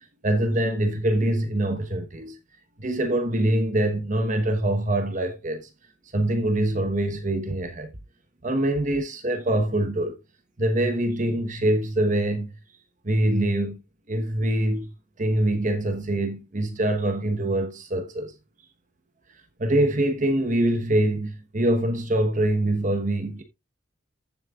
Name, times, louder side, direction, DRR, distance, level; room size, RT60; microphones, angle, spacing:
voice 1, 0.2-2.4 2.8-5.7 6.1-7.9 8.4-10.2 10.6-12.5 13.0-13.8 14.1-14.9 15.2-18.3 19.6-23.4, right 1 dB, 45° right, 1.2 m, -24 dB
14.5 x 7.5 x 2.4 m
head